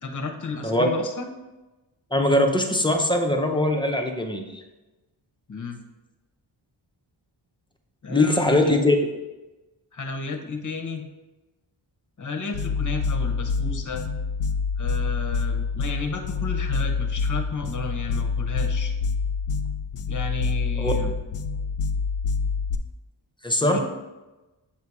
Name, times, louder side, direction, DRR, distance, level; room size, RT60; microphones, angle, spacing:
voice 1, 0.0-1.3 5.5-5.8 8.0-8.7 9.9-11.0 12.2-14.0 14.8-18.9 20.1-21.1 23.6-23.8, left 4 dB, 35° left, 4 dB, 0.8 m, -33 dB
voice 2, 2.1-4.4 8.1-9.0 20.8-20.9 23.4-23.8, left 1 dB, 10° left, 3 dB, 0.6 m, -21 dB
sound 1, 12.5-22.8, left 5 dB, 85° left, 0.6 m, -26 dB
7.4 x 2.8 x 4.7 m, 1.1 s
wide cardioid pair, 80°, 50 cm